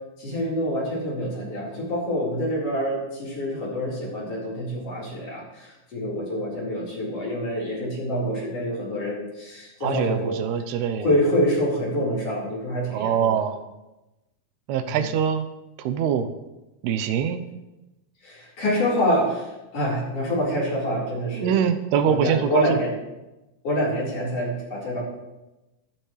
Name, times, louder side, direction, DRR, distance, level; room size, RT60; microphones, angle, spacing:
voice 1, 0.2-10.4 11.0-13.3 14.8-15.1 18.2-21.6 22.0-22.9 23.6-25.0, equal, 40° left, -6 dB, 5.1 m, -26 dB
voice 2, 9.8-11.1 12.9-13.5 14.7-15.5 15.8-16.3 16.8-17.4 21.3-22.6, right 8 dB, 85° right, 10 dB, 2.8 m, -23 dB
14.5 x 12.0 x 3.3 m, 1.0 s
omnidirectional pair, 4.5 m